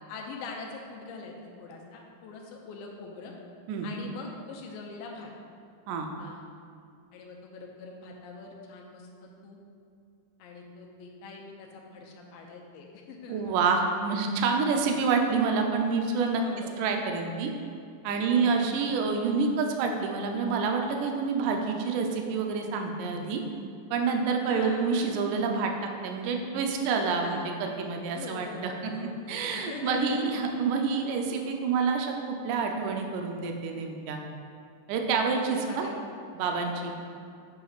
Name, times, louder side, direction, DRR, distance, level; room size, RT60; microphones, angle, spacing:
voice 1, 0.1-3.3 3.8-5.3 6.2-6.4 7.1-9.6 10.4-13.7 16.4-16.8 18.1-18.6 24.5-24.9 27.2-27.5 28.1-30.4 35.6-36.0, left 4 dB, 85° left, 0 dB, 2.4 m, -43 dB
voice 2, 13.3-16.4 16.8-17.5 18.0-23.4 23.9-25.7 26.0-28.9 29.3-34.2 34.9-35.9 36.3-36.9, right 5 dB, 80° right, 3 dB, 1.9 m, -28 dB
8.2 x 5.9 x 2.4 m, 2.4 s
omnidirectional pair, 4.1 m